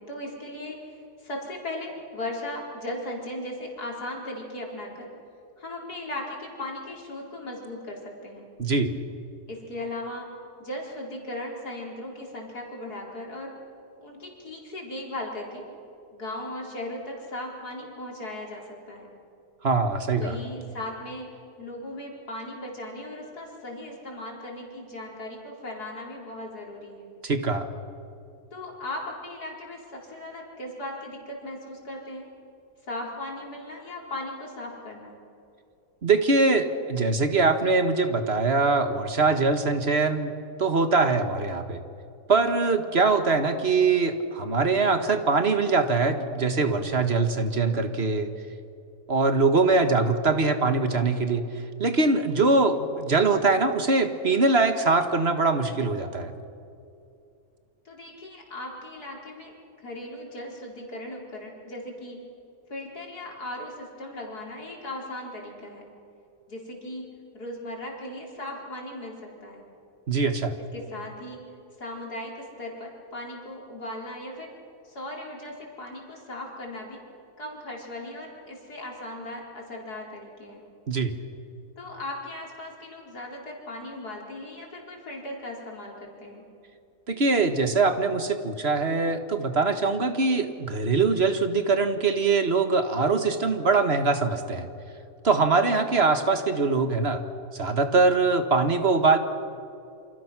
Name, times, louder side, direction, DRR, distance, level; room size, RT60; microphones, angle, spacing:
voice 1, 0.0-5.1 5.6-8.5 9.5-10.3 10.6-13.5 14.0-15.6 16.1-19.1 20.2-21.3 21.6-27.1 28.5-32.3 32.8-35.2 57.8-59.5 59.8-62.2 62.7-65.8 66.5-67.1 67.3-69.6 70.7-71.4 71.8-74.6 74.8-77.0 77.4-80.6 81.8-86.5, left 1 dB, 85° left, -1 dB, 4.7 m, -37 dB
voice 2, 8.6-8.9 19.6-20.4 27.2-27.7 36.0-40.3 40.6-41.8 42.3-48.3 49.1-51.4 51.8-56.3 70.1-70.5 80.9-81.1 87.1-94.7 95.2-97.2 97.5-99.2, right 3 dB, 40° right, 8 dB, 1.7 m, -23 dB
28.0 x 26.5 x 6.1 m, 2.6 s
omnidirectional pair, 1.6 m